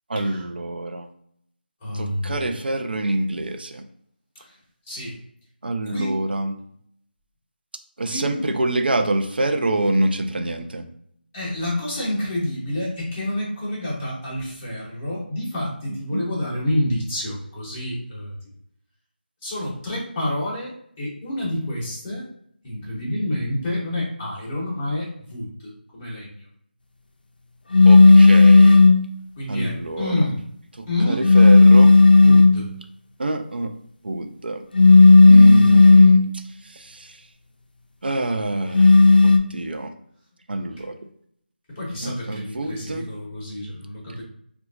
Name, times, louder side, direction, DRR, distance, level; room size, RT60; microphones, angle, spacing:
voice 1, 0.1-1.1 1.9-3.8 5.6-6.6 8.0-10.9 16.1-16.2 27.8-28.8 29.5-30.2 30.8-32.0 33.2-33.7 34.0-34.6 35.3-37.2 38.0-39.9 40.5-40.9 42.0-43.1, right 2 dB, 65° right, 6 dB, 0.5 m, -26 dB
voice 2, 1.8-2.4 4.9-5.2 5.9-6.2 8.0-8.5 11.3-18.3 19.4-20.7 21.0-22.3 22.6-26.4 29.4-30.4 30.9-31.2 32.2-32.7 41.7-44.2, left 1 dB, 15° left, -8 dB, 0.7 m, -28 dB
sound 1, 27.7-29.1 31.2-32.6 34.7-36.3 38.7-39.4, left 3 dB, 55° left, 0.4 m, -10 dB
2.8 x 2.3 x 2.4 m, 0.68 s
figure-of-eight pair, 175°, 6 cm